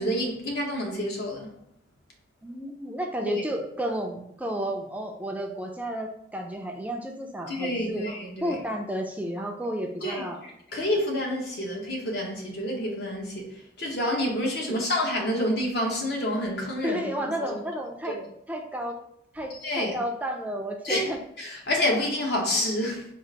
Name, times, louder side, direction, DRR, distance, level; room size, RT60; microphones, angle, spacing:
voice 1, 0.0-1.5 3.2-3.4 7.5-8.6 10.0-13.5 13.8-17.1 17.5-17.6 18.1-18.2 19.6-20.0 20.8-21.1 21.4-23.0, left 1 dB, 60° left, 1.0 m, -28 dB
voice 2, 2.4-8.0 8.4-10.4 14.7-14.8 16.8-18.2 18.5-19.0 19.3-21.2, equal, 10° right, 0.4 m, -32 dB
3.8 x 2.5 x 4.5 m
head